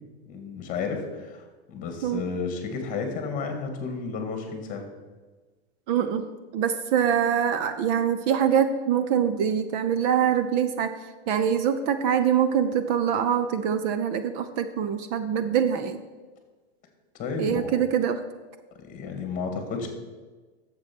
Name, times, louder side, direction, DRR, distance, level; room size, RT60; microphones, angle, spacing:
voice 1, 0.3-4.8 17.2-17.8 18.8-19.9, left 5 dB, 25° left, 5 dB, 2.0 m, -32 dB
voice 2, 5.9-6.3 6.5-10.9 11.3-16.0 17.4-18.2, right 8 dB, 35° right, 10 dB, 0.6 m, -24 dB
10.5 x 7.5 x 6.0 m, 1.3 s
supercardioid pair, 160°, 33 cm